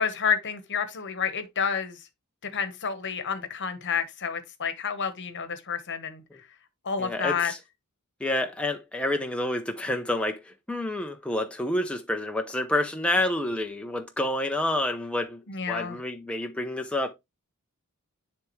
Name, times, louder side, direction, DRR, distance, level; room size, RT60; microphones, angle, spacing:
voice 1, 0.0-2.0 2.4-6.2 6.8-7.5 15.5-16.0, left 6 dB, 55° left, 1.1 m, -29 dB
voice 2, 7.0-7.6 8.2-15.4 15.7-17.1, left 1 dB, 5° left, 0.5 m, -28 dB
10.0 x 3.4 x 3.0 m
head